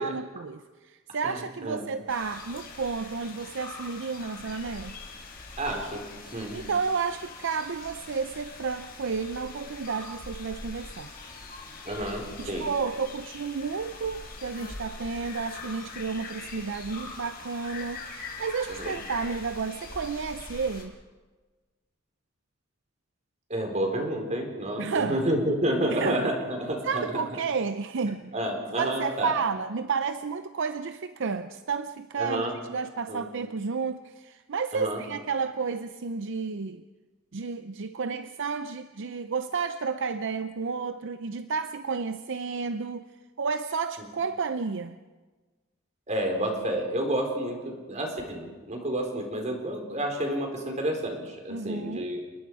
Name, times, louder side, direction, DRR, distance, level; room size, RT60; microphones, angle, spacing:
voice 1, 0.0-5.0 6.2-11.1 12.4-20.9 24.8-25.2 25.9-26.3 26.8-28.3 28.8-36.8 37.3-43.1 43.4-45.0 51.5-52.1, right 5 dB, 65° right, 0.6 m, -31 dB
voice 2, 1.2-1.8 5.6-6.0 6.3-6.6 11.8-12.7 18.8-19.0 23.5-27.0 28.1-29.3 32.2-32.5 33.1-33.2 34.7-35.0 46.1-52.2, right 1 dB, 35° right, 4.3 m, -30 dB
sound 1, 2.1-20.8, left 3 dB, 45° left, 4.2 m, -43 dB
29.0 x 20.0 x 4.8 m
head